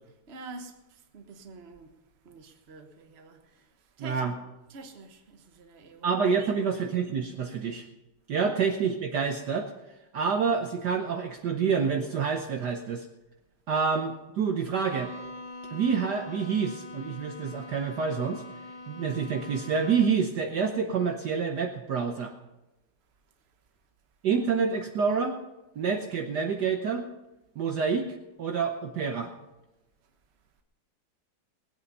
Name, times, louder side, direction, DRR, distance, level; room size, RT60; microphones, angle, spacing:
voice 1, 0.3-1.9 2.2-4.4 4.7-6.1 6.4-6.6 8.3-8.5, right 3 dB, 35° right, 1.2 m, -47 dB
voice 2, 4.0-4.3 6.0-7.8 8.3-9.7 10.1-13.1 13.7-15.1 15.7-18.4 18.9-22.3 24.2-25.4 25.8-27.0 27.6-29.3, right 6 dB, 60° right, 1.3 m, -28 dB
Bowed string instrument, 14.8-20.3, left 2 dB, 35° left, 0.6 m, -43 dB
20.0 x 8.5 x 5.4 m
omnidirectional pair, 2.3 m